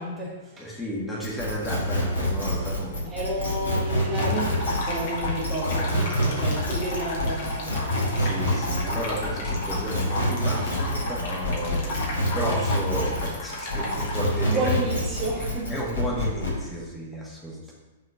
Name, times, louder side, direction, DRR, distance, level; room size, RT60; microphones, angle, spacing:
voice 1, 0.0-0.7 3.1-7.8 13.8-13.9 14.4-15.8, right 1 dB, 20° right, -5 dB, 1.5 m, -31 dB
voice 2, 0.6-3.1 5.9-6.6 8.2-14.8 15.7-17.7, equal, 5° left, -5 dB, 1.8 m, -33 dB
sound 1, 1.2-13.4 13.7-16.6, equal, 70° left, 2.7 m, -27 dB
sound 2, 4.1-14.7, left 1 dB, 50° left, 1.9 m, -34 dB
6.7 x 4.2 x 5.6 m, 1.1 s
figure-of-eight pair, 105°, 0 cm